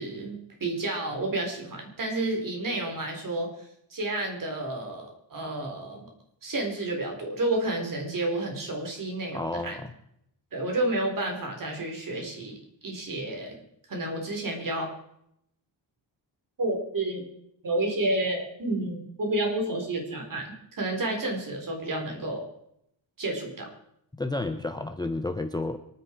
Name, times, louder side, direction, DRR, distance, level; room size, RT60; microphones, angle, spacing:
voice 1, 0.0-6.1 6.4-9.8 10.5-13.6 13.9-14.9 16.6-17.3 17.6-22.5 23.2-23.7, right 2 dB, 40° right, 2 dB, 4.4 m, -30 dB
voice 2, 9.3-9.9 24.2-25.8, left 2 dB, 10° left, 8 dB, 0.7 m, -31 dB
25.0 x 10.0 x 4.6 m, 0.76 s
wide cardioid pair, 140°, 47 cm